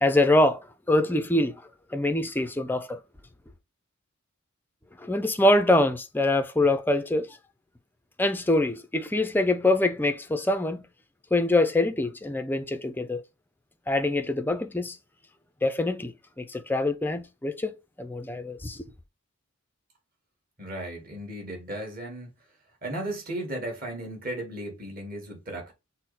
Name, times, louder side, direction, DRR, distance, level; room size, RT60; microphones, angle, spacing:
voice 1, 0.0-1.6 1.9-3.0 5.0-7.3 8.2-10.9 11.3-13.2 13.9-15.0 15.6-18.8, left 2 dB, 10° left, 0.4 m, -24 dB
voice 2, 20.6-22.3 22.8-25.7, right 1 dB, 40° right, 1.8 m, -35 dB
6.2 x 2.1 x 4.0 m
head